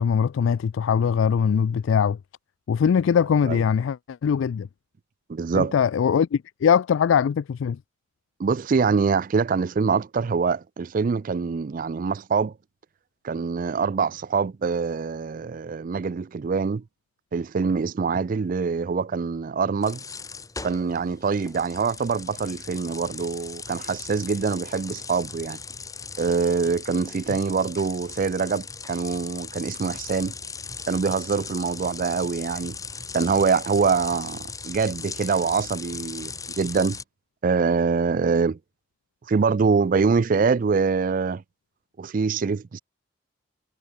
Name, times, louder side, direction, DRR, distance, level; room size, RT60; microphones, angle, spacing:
voice 1, 0.0-2.2 2.7-4.7 5.5-7.8, left 7 dB, 70° left, 0.3 m, -21 dB
voice 2, 5.3-5.7 8.4-12.5 13.2-16.8 17.3-20.0 20.6-25.6 26.2-30.3 30.9-32.8 33.1-37.0 37.4-38.6 39.3-41.4 42.0-42.8, right 5 dB, 40° right, 0.3 m, -24 dB
sound 1, 19.8-37.0, left 5 dB, 15° left, 1.6 m, -38 dB
head